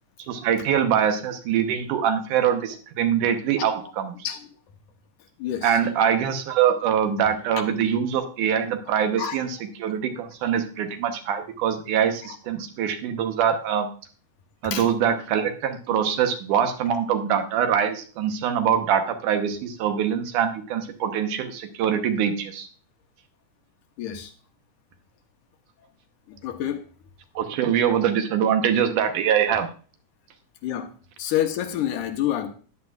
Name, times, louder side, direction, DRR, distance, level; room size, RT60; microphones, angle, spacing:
voice 1, 0.3-4.2 5.6-13.9 14.6-22.7 27.4-29.7, right 8 dB, 80° right, 2.5 m, -23 dB
voice 2, 3.6-3.9 4.2-4.5 5.4-5.8 9.2-9.4 14.6-14.9 24.0-24.3 26.3-26.8 30.6-30.9 31.2-32.5, left 11 dB, 85° left, 2.5 m, -28 dB
13.5 x 9.8 x 2.4 m
omnidirectional pair, 3.6 m